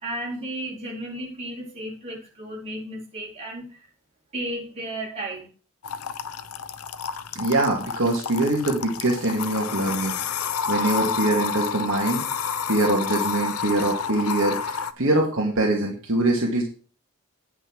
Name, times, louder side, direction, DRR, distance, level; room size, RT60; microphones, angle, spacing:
voice 1, 0.0-3.8 4.3-5.5, right 1 dB, 30° right, 4.3 m, -33 dB
sound 1, 5.8-14.9, left 6 dB, 90° left, 0.7 m, -29 dB
voice 2, 7.3-12.2 12.7-16.6, right 2 dB, 60° right, 2.3 m, -23 dB
9.4 x 5.9 x 6.2 m
head